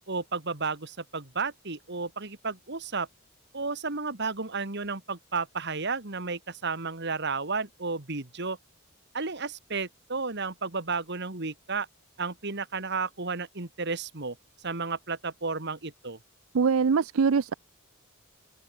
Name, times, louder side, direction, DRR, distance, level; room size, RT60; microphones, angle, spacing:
voice 1, 0.1-3.1 3.5-8.6 9.1-11.9 12.2-14.4 14.6-16.2, right 4 dB, 55° right, 2.2 m, -32 dB
voice 2, 16.5-17.5, right 5 dB, 75° right, 0.5 m, -23 dB
open air
head